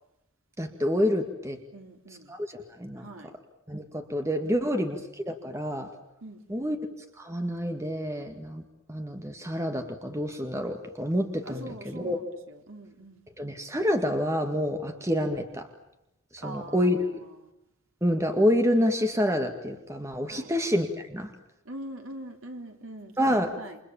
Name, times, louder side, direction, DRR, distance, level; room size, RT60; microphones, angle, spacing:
voice 1, 0.6-1.6 2.3-3.1 3.7-5.9 6.5-6.8 7.2-8.6 8.9-12.2 13.4-15.7 16.3-17.2 18.0-21.3 23.2-23.5, equal, 15° right, 5 dB, 2.1 m, -28 dB
voice 2, 1.7-2.3 3.0-3.3 4.4-4.8 6.2-6.7 11.5-13.2 16.4-17.0 17.2-17.5 20.3-20.5 21.7-23.8, right 1 dB, 65° right, 4 dB, 3.7 m, -43 dB
29.0 x 26.5 x 7.3 m, 0.88 s
head